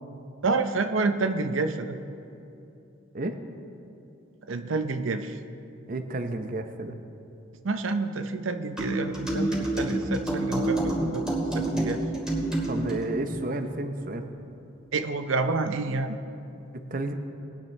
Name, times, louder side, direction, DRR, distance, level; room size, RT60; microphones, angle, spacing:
voice 1, 0.4-2.0 4.5-5.4 7.6-12.0 14.9-16.2, right 3 dB, 90° right, 8 dB, 0.6 m, -28 dB
voice 2, 5.9-7.0 12.7-14.3 16.9-17.1, right 2 dB, 45° right, 7 dB, 0.7 m, -31 dB
sound 1, 8.8-13.0, right 1 dB, 5° right, 2.3 m, -28 dB
20.0 x 10.0 x 3.2 m, 2.7 s
head